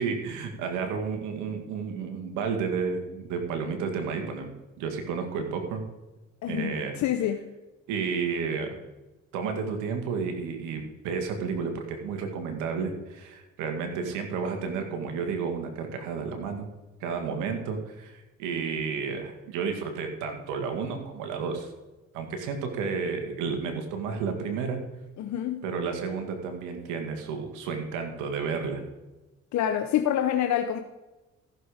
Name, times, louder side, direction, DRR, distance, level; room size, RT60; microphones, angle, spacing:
voice 1, 0.0-4.5 4.8-5.8 6.5-6.9 7.9-8.8 9.3-16.7 17.0-21.7 22.1-24.8 25.6-28.8, right 5 dB, 90° right, 2.0 m, -31 dB
voice 2, 6.4-7.5 25.2-25.7 29.5-30.8, left 10 dB, 70° left, 0.9 m, -27 dB
14.5 x 6.8 x 5.0 m
supercardioid pair, 70°, 29 cm